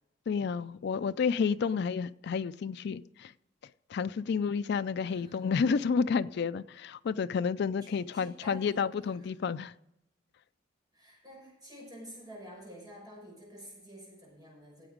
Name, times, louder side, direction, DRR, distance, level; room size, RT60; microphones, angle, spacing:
voice 1, 0.3-3.3 3.9-9.7, left 6 dB, 55° left, 0.3 m, -30 dB
voice 2, 5.0-5.9 7.8-9.1 10.9-14.9, equal, 20° right, 6.2 m, -49 dB
15.5 x 7.9 x 5.1 m
head